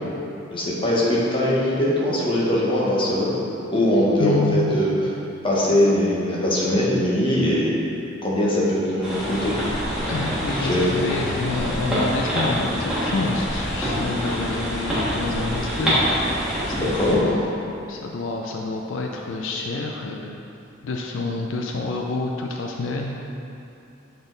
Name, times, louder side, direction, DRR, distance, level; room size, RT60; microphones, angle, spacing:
voice 1, 0.5-3.3 3.7-4.9 5.4-7.7 8.2-9.5 10.5-10.9 16.7-17.4, left 1 dB, 25° left, -6 dB, 1.0 m, -21 dB
voice 2, 4.2-4.8 10.1-17.4 17.9-20.4 20.8-23.1, left 3 dB, 75° left, 1 dB, 0.4 m, -28 dB
sound 1, 9.0-17.1, equal, 5° right, 1.5 m, -26 dB
7.0 x 4.1 x 3.8 m, 2.8 s
head